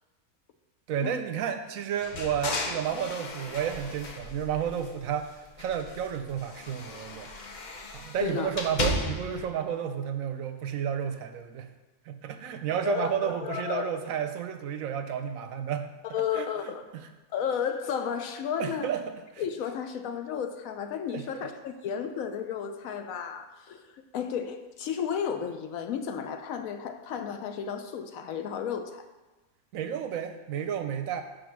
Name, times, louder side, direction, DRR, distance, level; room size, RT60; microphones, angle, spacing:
voice 1, 0.9-7.3 7.9-11.7 12.1-15.8 16.1-16.5 17.0-17.1 18.6-19.4 21.1-21.5 29.7-31.2, right 8 dB, 70° right, 7 dB, 0.9 m, -32 dB
sound 1, 2.0-5.2 5.5-9.5, left 2 dB, 50° left, 0.5 m, -35 dB
voice 2, 8.2-8.5 12.8-14.0 16.0-16.8 17.3-18.9 19.4-29.0, left 8 dB, 70° left, 7 dB, 0.9 m, -33 dB
5.2 x 5.1 x 6.0 m, 1.1 s
omnidirectional pair, 1.6 m